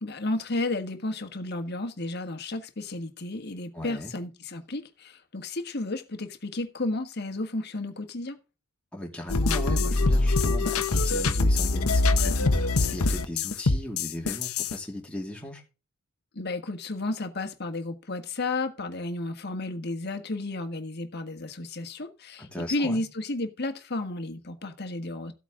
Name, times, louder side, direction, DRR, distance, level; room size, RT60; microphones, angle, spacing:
voice 1, 0.0-8.4 16.3-25.3, left 2 dB, 50° left, 1.5 m, -32 dB
voice 2, 3.7-4.1 8.9-15.6 22.4-23.0, left 1 dB, 5° left, 2.4 m, -37 dB
sound 1, 9.3-14.7, left 3 dB, 85° left, 1.0 m, -23 dB
14.5 x 8.3 x 3.8 m
head